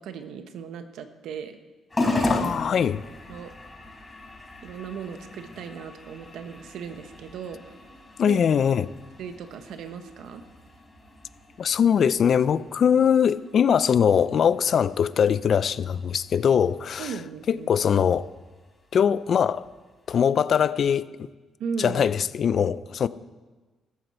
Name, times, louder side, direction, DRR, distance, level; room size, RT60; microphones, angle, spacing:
voice 1, 0.0-1.6 3.3-3.5 4.6-7.6 8.3-8.4 9.2-10.4 17.0-17.7 21.6-22.1, right 6 dB, 80° right, 1.2 m, -37 dB
sound 1, 1.9-20.5, left 2 dB, 20° left, 4.1 m, -37 dB
voice 2, 2.3-3.0 8.2-8.9 11.6-17.1 17.5-18.3 18.9-19.6 20.1-21.3 21.8-23.1, left 8 dB, 55° left, 0.5 m, -22 dB
14.5 x 14.0 x 4.5 m
cardioid pair, 90°, 0 cm